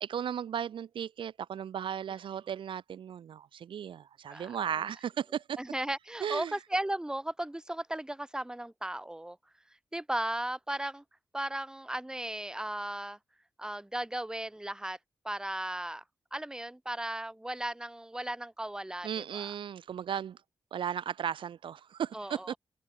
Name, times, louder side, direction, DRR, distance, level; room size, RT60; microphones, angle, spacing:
voice 1, 0.0-5.6 6.2-6.6 19.0-20.4 20.7-22.6, right 9 dB, 70° right, 0.4 m, -36 dB
voice 2, 4.3-4.8 5.6-9.4 9.9-11.0 11.3-13.2 13.6-15.0 15.2-16.0 16.3-19.5 22.1-22.6, right 1 dB, 10° right, 0.6 m, -36 dB
supercardioid pair, 40°, 9 cm